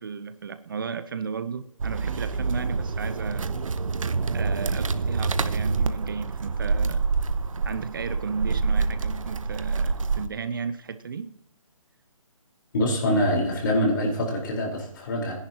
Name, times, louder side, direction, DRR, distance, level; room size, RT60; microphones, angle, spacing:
voice 1, 0.0-3.5 4.2-7.1 7.6-11.3, right 5 dB, 40° right, 0.7 m, -34 dB
sound 1, 1.8-10.3, right 4 dB, 70° right, 1.1 m, -27 dB
voice 2, 12.7-15.3, left 1 dB, 35° left, 4.4 m, -24 dB
28.0 x 11.0 x 3.0 m
hypercardioid pair, 170°, 17 cm